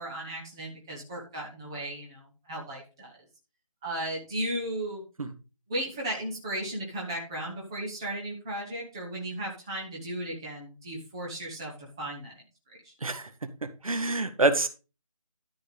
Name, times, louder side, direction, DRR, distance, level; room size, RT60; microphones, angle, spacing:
voice 1, 0.0-3.2 3.8-5.0 5.7-12.4 12.8-12.9, right 1 dB, 5° right, -3 dB, 0.9 m, -35 dB
voice 2, 13.0-14.7, right 2 dB, 70° right, 9 dB, 1.8 m, -27 dB
12.5 x 4.6 x 5.3 m, 0.32 s
figure-of-eight pair, 175°, 18 cm